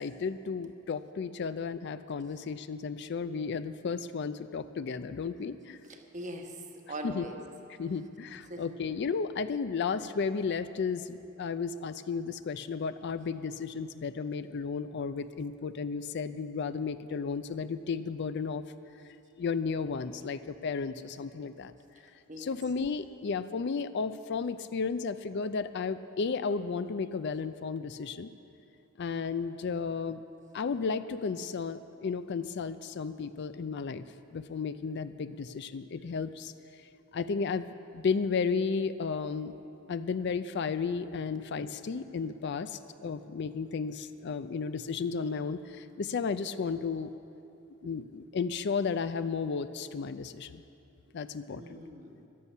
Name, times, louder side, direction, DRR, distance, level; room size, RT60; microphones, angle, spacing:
voice 1, 0.0-5.8 7.0-7.2 7.8-18.6 19.4-21.7 22.4-28.3 29.0-30.2 30.5-34.0 34.3-36.5 37.1-39.5 39.9-47.1 47.8-50.6 51.1-51.8, left 5 dB, 55° left, 12 dB, 0.4 m, -33 dB
voice 2, 5.8-6.6 6.9-7.4 8.5-8.7 22.3-22.6 43.1-43.2 46.7-46.9 47.8-47.9 51.5-52.3, right 1 dB, 40° right, 3 dB, 1.1 m, -42 dB
14.0 x 11.5 x 5.5 m, 2.8 s
head